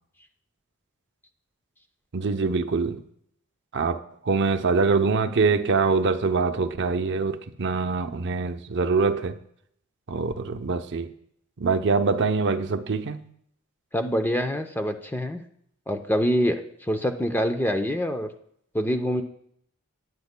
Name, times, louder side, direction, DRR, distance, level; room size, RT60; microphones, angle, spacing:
voice 1, 2.1-3.0 3.7-4.0 4.2-9.3 10.1-11.1 11.6-13.2, right 4 dB, 55° right, 0.7 m, -24 dB
voice 2, 13.9-15.4 15.9-18.3 18.7-19.2, equal, 10° left, 0.6 m, -25 dB
18.5 x 9.5 x 2.2 m
head